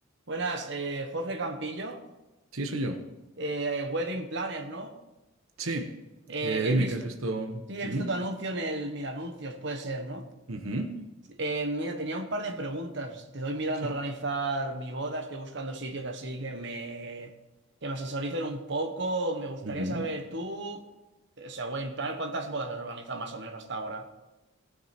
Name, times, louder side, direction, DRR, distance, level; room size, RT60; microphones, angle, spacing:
voice 1, 0.3-2.0 3.4-4.9 6.3-6.9 7.7-10.3 11.4-17.3 17.8-20.8 21.4-24.1, right 2 dB, 55° right, 4 dB, 1.3 m, -33 dB
voice 2, 2.5-3.0 5.6-5.9 6.4-8.1 10.5-11.0 19.6-20.1, right 2 dB, 80° right, 5 dB, 1.1 m, -30 dB
18.5 x 6.6 x 4.4 m, 1.0 s
head